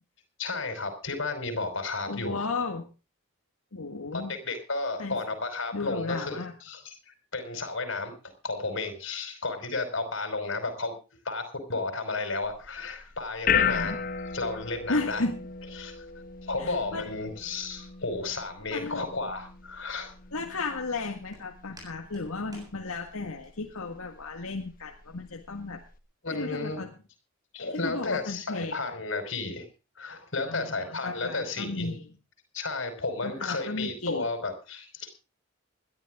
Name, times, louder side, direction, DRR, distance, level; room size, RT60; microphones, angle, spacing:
voice 1, 0.4-2.5 4.1-8.1 8.4-10.9 11.2-14.0 14.3-15.2 15.7-16.0 16.4-20.1 26.2-26.8 27.5-29.7 30.0-31.9 32.5-35.1, left 3 dB, 60° left, 7 dB, 5.1 m, -33 dB
voice 2, 2.1-2.9 3.7-4.4 5.0-5.2 5.7-6.5 13.6-14.0 14.9-15.4 16.6-17.1 18.7-19.1 20.3-25.8 26.3-26.9 27.8-28.8 30.4-32.0 33.2-34.3, left 3 dB, 85° left, 2 dB, 1.8 m, -34 dB
sound 1, 12.4-26.0, left 7 dB, 40° left, 1.3 m, -36 dB
Walk footsteps, 19.6-23.5, equal, 15° right, 7.6 m, -55 dB
21.0 x 13.0 x 3.7 m, 0.33 s
head